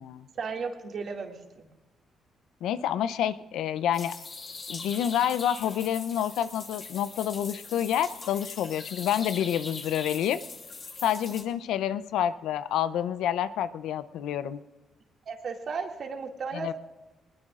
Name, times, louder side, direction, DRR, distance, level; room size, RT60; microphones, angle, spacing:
voice 1, 0.3-1.7 15.3-16.7, right 5 dB, 55° right, 2 dB, 2.2 m, -35 dB
voice 2, 2.6-4.2 4.7-10.4 11.0-14.6 16.5-16.7, left 10 dB, 85° left, 13 dB, 0.6 m, -28 dB
sound 1, 3.9-11.4, left 4 dB, 45° left, 2.9 m, -41 dB
20.5 x 20.5 x 2.5 m, 1.1 s
cardioid pair, 90°, 0 cm